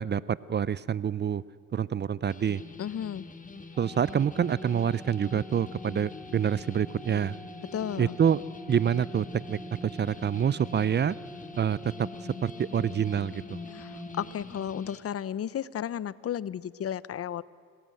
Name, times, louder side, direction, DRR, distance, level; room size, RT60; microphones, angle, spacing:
voice 1, 0.0-1.4 1.7-2.6 3.8-7.4 8.0-8.4 8.7-11.2 11.6-12.1 12.4-13.6, right 8 dB, 35° right, 20 dB, 0.5 m, -27 dB
sound 1, 2.3-15.0, left 4 dB, 25° left, 1.7 m, -46 dB
voice 2, 2.8-3.3 7.7-8.2 13.7-17.4, left 9 dB, 50° left, 19 dB, 0.7 m, -33 dB
sound 2, 3.7-14.3, equal, 5° left, 1.8 m, -45 dB
26.5 x 20.0 x 7.8 m, 2.2 s
cardioid pair, 90°, 30 cm